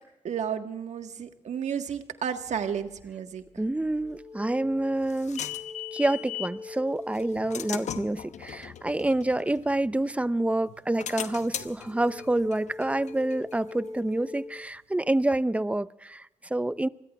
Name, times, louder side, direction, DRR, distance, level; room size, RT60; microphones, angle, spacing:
voice 1, 0.2-3.4, right 8 dB, 70° right, 1.6 m, -32 dB
sound 1, 2.7-3.0 3.5-9.3 11.8-14.5, left 3 dB, 45° right, 3.5 m, -43 dB
voice 2, 3.6-5.5 5.9-16.9, right 1 dB, 10° right, 0.7 m, -27 dB
sound 2, 4.4-6.6 7.1-10.2 10.7-14.1, left 10 dB, 70° left, 0.9 m, -39 dB
27.0 x 21.0 x 2.4 m
cardioid pair, 60°, 12 cm